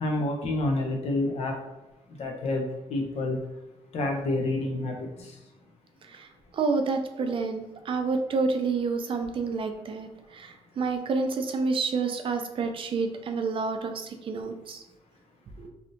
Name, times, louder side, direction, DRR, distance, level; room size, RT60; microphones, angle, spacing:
voice 1, 0.0-1.5 2.2-3.4 3.9-5.1, left 2 dB, 70° left, 2 dB, 0.7 m, -28 dB
voice 2, 6.5-14.8 15.6-15.7, right 4 dB, 50° right, 5 dB, 0.4 m, -29 dB
3.4 x 2.7 x 2.5 m, 1.0 s
cardioid pair, 125°, 12 cm